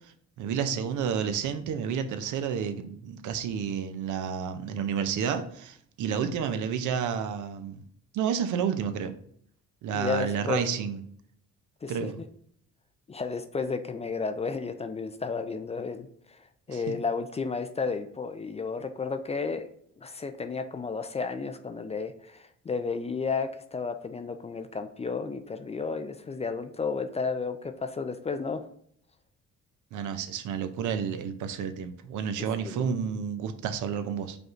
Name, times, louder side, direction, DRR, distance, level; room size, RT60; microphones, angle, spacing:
voice 1, 0.4-7.8 8.1-9.1 9.8-11.0 11.9-12.2 16.7-16.9 29.9-34.4, right 7 dB, 75° right, 9 dB, 0.6 m, -30 dB
voice 2, 9.9-10.6 11.8-11.9 13.1-16.4 16.7-19.7 20.0-28.7 32.6-32.9, left 4 dB, 20° left, 8 dB, 0.3 m, -32 dB
5.1 x 3.1 x 2.5 m, 0.62 s
cardioid pair, 90°, 30 cm